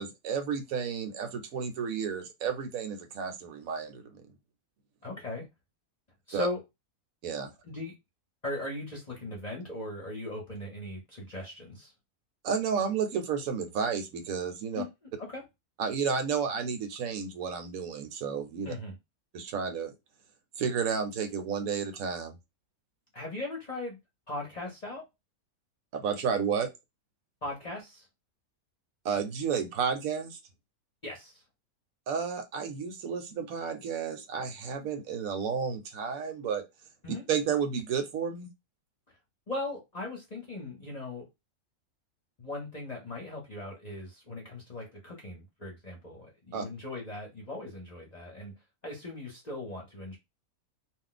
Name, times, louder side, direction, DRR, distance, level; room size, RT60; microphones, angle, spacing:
voice 1, 0.0-4.0 6.3-6.5 7.2-7.5 12.4-14.8 15.8-18.7 19.3-19.9 20.6-22.4 25.9-26.7 29.0-30.4 32.1-36.6 37.3-38.5 46.5-46.6, right 6 dB, 70° right, 1.1 m, -31 dB
voice 2, 5.0-5.5 6.3-6.6 7.6-7.9 8.4-11.9 14.7-15.4 18.6-19.0 23.1-24.0 24.3-25.0 27.4-28.1 31.0-31.4 37.0-37.2 39.5-41.3 42.4-48.5 48.8-50.2, left 2 dB, 35° left, 0.8 m, -38 dB
2.5 x 2.1 x 3.8 m
omnidirectional pair, 1.5 m